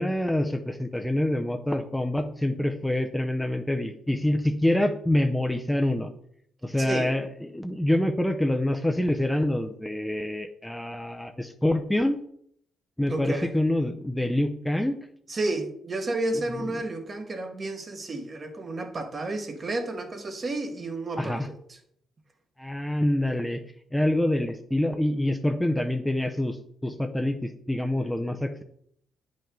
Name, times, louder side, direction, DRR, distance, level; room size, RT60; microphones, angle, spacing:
voice 1, 0.0-6.1 6.6-12.2 13.0-15.0 21.2-21.5 22.6-23.6 23.9-28.6, left 1 dB, 5° left, 0.6 m, -26 dB
voice 2, 6.8-7.1 13.1-13.5 15.3-21.6, right 2 dB, 35° right, 1.3 m, -31 dB
8.8 x 5.5 x 3.8 m
cardioid pair, 90°, 0 cm